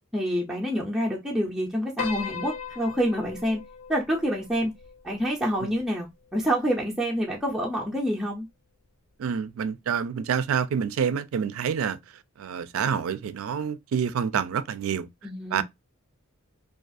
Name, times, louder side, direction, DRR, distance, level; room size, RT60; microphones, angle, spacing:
voice 1, 0.1-3.6 3.9-4.7 5.0-8.5 15.2-15.6, equal, ahead, 0.4 m, -27 dB
Piano, 2.0-6.4, left 7 dB, 80° left, 0.4 m, -39 dB
voice 2, 9.2-12.0 12.4-15.1 15.5-15.6, right 7 dB, 80° right, 0.3 m, -27 dB
2.4 x 2.3 x 2.5 m
head